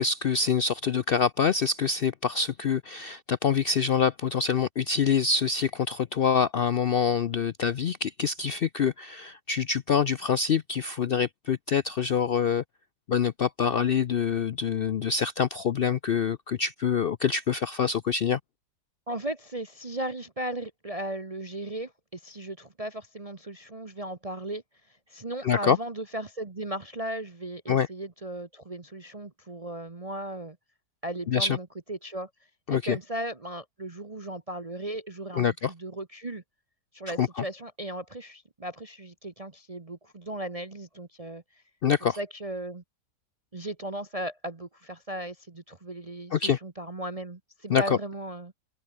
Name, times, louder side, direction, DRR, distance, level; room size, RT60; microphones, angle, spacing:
voice 1, 0.0-12.6 13.1-18.4 25.4-25.8 27.7-27.9 31.3-31.6 32.7-33.0 35.4-35.7 37.2-37.4 41.8-42.2 46.3-46.6 47.7-48.0, left 6 dB, 80° left, 0.5 m, -25 dB
voice 2, 19.1-24.6 25.1-30.6 31.0-32.3 32.7-36.4 36.9-41.4 42.2-42.8 43.5-48.5, right 1 dB, 25° right, 1.1 m, -36 dB
omnidirectional pair, 1.7 m